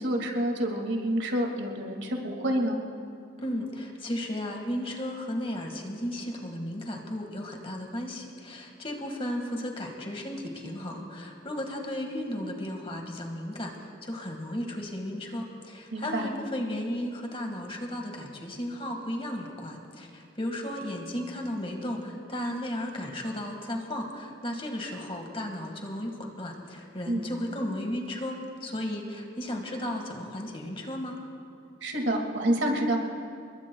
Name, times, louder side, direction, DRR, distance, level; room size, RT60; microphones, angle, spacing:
voice 1, 0.0-2.8 15.9-16.3 27.1-27.3 31.8-33.0, right 1 dB, 75° right, 2 dB, 2.2 m, -28 dB
voice 2, 3.4-31.2, left 1 dB, 30° left, 2 dB, 1.8 m, -34 dB
29.0 x 21.5 x 2.3 m, 2.4 s
head